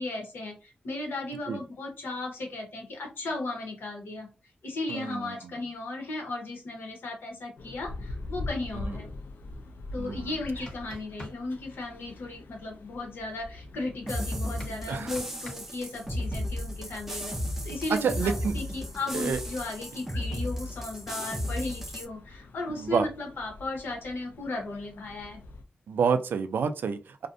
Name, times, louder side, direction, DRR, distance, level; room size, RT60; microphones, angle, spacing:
voice 1, 0.0-4.3 4.6-9.1 9.9-17.3 17.6-25.4, left 2 dB, 85° left, 0.9 m, -36 dB
voice 2, 4.9-5.5 8.7-8.9 10.0-10.4 14.9-15.2 18.0-18.5 19.1-19.4 22.8-23.1 25.9-27.3, right 6 dB, 80° right, 0.3 m, -29 dB
sound 1, 7.6-25.6, left 2 dB, 70° left, 0.4 m, -44 dB
sound 2, 10.4-11.4 14.6-15.6, left 1 dB, 30° left, 0.8 m, -43 dB
sound 3, 14.1-22.1, equal, 10° right, 0.4 m, -34 dB
2.5 x 2.1 x 2.5 m
wide cardioid pair, 155°, 3 cm